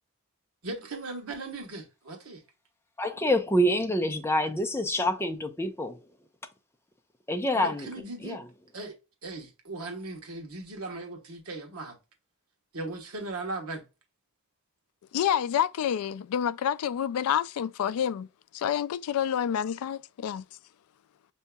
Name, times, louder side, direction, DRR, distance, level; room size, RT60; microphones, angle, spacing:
voice 1, 0.6-2.4 7.5-8.4 8.7-8.9 9.2-12.0 12.7-13.8, right 2 dB, 90° right, 1.1 m, -38 dB
voice 2, 3.0-6.0 7.3-7.9 8.2-8.5, equal, 10° left, 0.4 m, -26 dB
voice 3, 15.1-18.3 18.5-20.4, left 9 dB, 80° left, 0.3 m, -28 dB
6.6 x 2.7 x 2.2 m
head